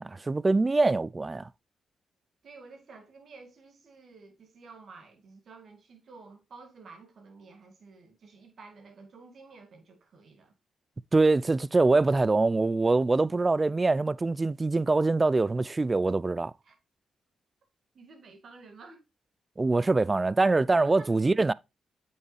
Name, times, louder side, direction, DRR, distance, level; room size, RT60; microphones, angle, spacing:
voice 1, 0.0-1.5 11.1-16.5 19.6-21.5, right 3 dB, 30° right, 0.3 m, -24 dB
voice 2, 2.4-10.5 16.6-16.7 17.9-19.0 20.8-21.1, right 3 dB, 60° right, 1.9 m, -51 dB
8.3 x 5.6 x 3.2 m
supercardioid pair, 45°, 0 cm